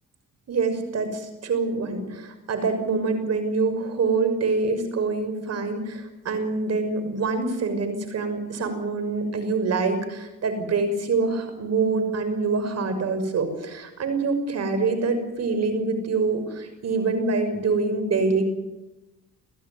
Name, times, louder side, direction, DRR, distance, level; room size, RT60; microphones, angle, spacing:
voice 1, 0.5-18.5, right 4 dB, 55° right, 9 dB, 6.1 m, -25 dB
28.5 x 15.5 x 9.6 m, 1.0 s
cardioid pair, 90°, 30 cm